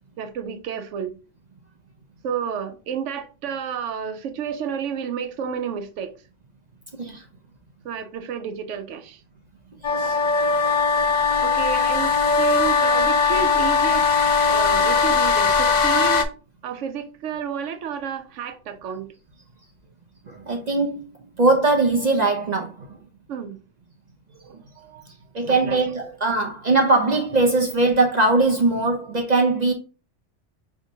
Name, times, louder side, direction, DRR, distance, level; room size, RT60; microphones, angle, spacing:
voice 1, 0.2-1.1 2.2-6.2 7.8-9.2 11.4-14.1 14.5-16.2 16.6-19.1 23.3-23.6 24.3-25.1 25.5-25.8, right 7 dB, 85° right, 0.9 m, -31 dB
sound 1, 9.8-16.2, left 5 dB, 55° left, 0.5 m, -19 dB
voice 2, 9.8-10.2 20.3-21.1 21.4-22.9 25.3-29.7, right 3 dB, 50° right, 0.5 m, -20 dB
5.2 x 3.5 x 2.6 m
omnidirectional pair, 1.2 m